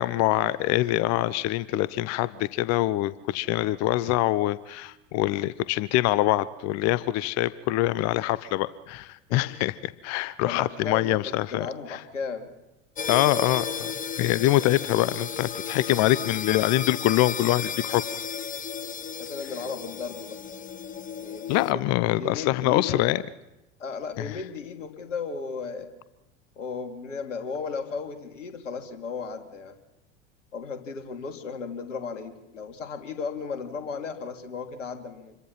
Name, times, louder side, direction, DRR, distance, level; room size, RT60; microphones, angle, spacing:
voice 1, 0.0-9.7 10.0-12.0 13.1-13.9 14.2-18.0 21.5-23.2 24.2-24.4, left 16 dB, 45° left, 18 dB, 0.8 m, -24 dB
voice 2, 10.4-11.2 11.5-12.5 19.2-20.4 21.2-21.8 22.2-23.0 23.8-25.9 26.6-29.8 30.5-35.4, left 5 dB, 75° left, 6 dB, 2.7 m, -35 dB
sound 1, 13.0-21.7, left 7 dB, 20° left, 1.2 m, -34 dB
27.5 x 22.5 x 5.8 m, 0.95 s
figure-of-eight pair, 80°, 38 cm